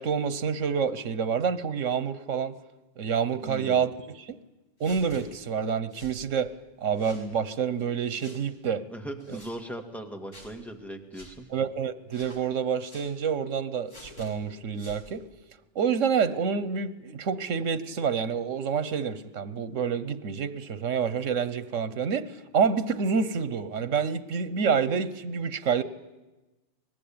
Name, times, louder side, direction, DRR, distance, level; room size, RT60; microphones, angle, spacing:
voice 1, 0.0-2.5 3.0-3.9 4.2-4.4 4.8-6.5 6.8-8.8 11.5-15.2 15.7-25.8, right 6 dB, 85° right, 1.4 m, -28 dB
voice 2, 3.4-3.9 8.9-11.5, right 1 dB, ahead, 2.2 m, -39 dB
sound 1, 4.8-5.2 5.9-6.2 6.9-7.3 8.2-8.4 9.2-9.5 10.3-10.5 11.1-11.3 12.1-12.4 12.9-13.1 13.9-14.3 14.7-15.0, equal, 85° left, 6.1 m, -48 dB
24.5 x 20.5 x 8.8 m
omnidirectional pair, 1.3 m